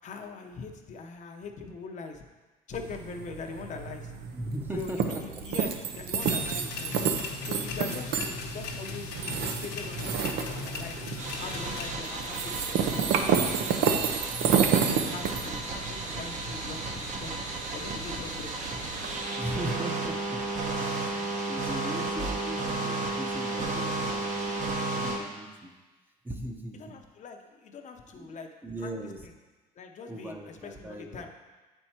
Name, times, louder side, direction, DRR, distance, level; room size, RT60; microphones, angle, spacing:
voice 1, 0.0-2.2 2.7-4.1 4.7-7.0 7.4-11.0 11.4-14.0 14.5-17.4 17.7-18.5 26.8-28.5 28.8-29.3 29.8-31.3, left 4 dB, 45° left, 4 dB, 0.7 m, -42 dB
sound 1, 2.7-19.1, right 7 dB, 75° right, 0.6 m, -31 dB
voice 2, 4.3-5.2 19.4-20.4 20.7-25.7 26.2-27.0 28.1-28.3 28.6-29.2 30.1-31.3, right 1 dB, 10° right, 2 dB, 0.7 m, -39 dB
sound 2, 6.2-11.9, left 4 dB, 85° left, 0.9 m, -38 dB
sound 3, 11.2-25.2, right 2 dB, 45° right, 1.0 m, -33 dB
7.9 x 4.4 x 4.3 m, 1.2 s
cardioid pair, 110°, 17 cm